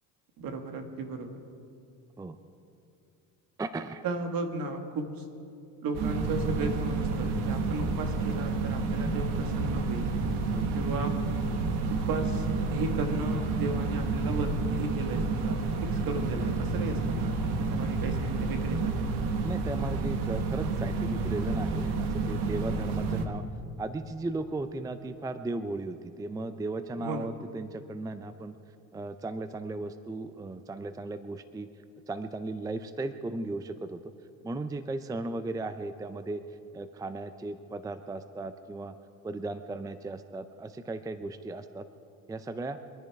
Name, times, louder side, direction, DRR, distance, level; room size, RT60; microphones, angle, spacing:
voice 1, 0.4-1.4 4.0-5.2 5.8-10.1 10.7-11.2 11.9-19.1 27.0-27.3, right 2 dB, 60° right, 6 dB, 1.9 m, -35 dB
voice 2, 3.6-4.0 10.5-10.8 19.4-23.4 23.8-28.6 28.9-31.7 32.1-34.1 34.4-36.4 36.7-38.9 39.2-41.8 42.3-42.8, right 2 dB, 10° right, 11 dB, 0.5 m, -36 dB
sound 1, 5.9-23.2, right 3 dB, 75° right, 1.5 m, -30 dB
24.5 x 10.5 x 4.8 m, 2.6 s
supercardioid pair, 100°, 39 cm